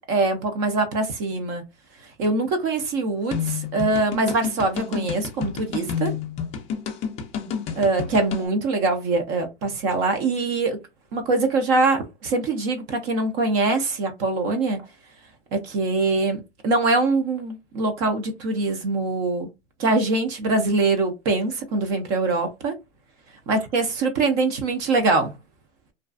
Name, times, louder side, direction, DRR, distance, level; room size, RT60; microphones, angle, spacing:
voice 1, 0.1-1.6 2.2-6.2 7.8-10.8 11.1-14.8 15.5-19.5 19.8-22.7 23.5-25.3, right 3 dB, 35° right, 0.5 m, -23 dB
sound 1, 3.3-8.5, left 7 dB, 20° left, 0.3 m, -29 dB
2.4 x 2.3 x 2.3 m
hypercardioid pair, 130°, 34 cm